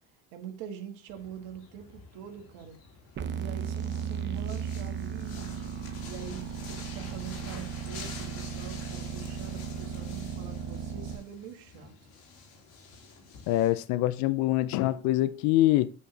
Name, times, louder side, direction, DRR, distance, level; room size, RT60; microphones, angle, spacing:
voice 1, 0.3-2.8 3.3-5.6 6.1-11.9, right 8 dB, 75° right, 1.7 m, -44 dB
sound 1, 1.1-13.8, left 4 dB, 80° left, 3.0 m, -48 dB
sound 2, 3.2-11.2, right 7 dB, 35° right, 0.7 m, -36 dB
voice 2, 13.5-15.9, left 15 dB, 65° left, 0.5 m, -24 dB
8.3 x 4.5 x 3.9 m
cardioid pair, 115°, 32 cm